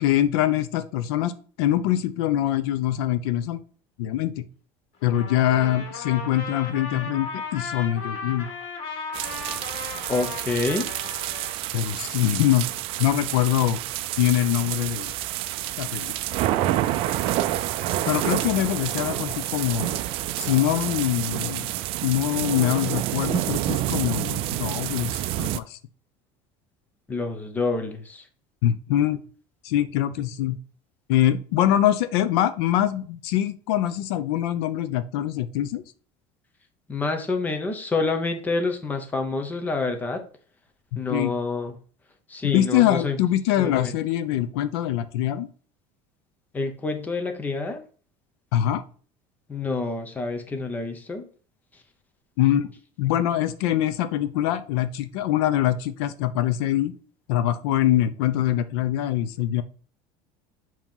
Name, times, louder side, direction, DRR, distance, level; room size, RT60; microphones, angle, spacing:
voice 1, 0.0-1.3 1.6-3.6 4.0-4.5 5.0-8.5 11.7-12.7 13.0-13.8 14.2-15.1 15.8-16.1 18.1-20.0 20.4-21.7 22.0-25.8 28.6-29.2 29.6-30.6 31.1-35.8 41.1-41.3 42.4-45.5 48.5-48.8 52.4-52.7 53.0-57.0 57.3-59.6, left 12 dB, 85° left, 12 dB, 0.6 m, -23 dB
Trumpet, 5.0-11.5, left 4 dB, 50° left, 1.6 m, -36 dB
sound 1, 9.1-25.6, right 14 dB, 45° right, 0.4 m, -28 dB
voice 2, 10.1-10.9 27.1-28.2 36.9-40.2 40.9-41.7 42.3-43.2 43.6-43.9 46.5-47.8 49.5-51.3, left 3 dB, 15° left, 6 dB, 0.8 m, -27 dB
7.2 x 3.0 x 5.4 m, 0.41 s
cardioid pair, 165°, 13 cm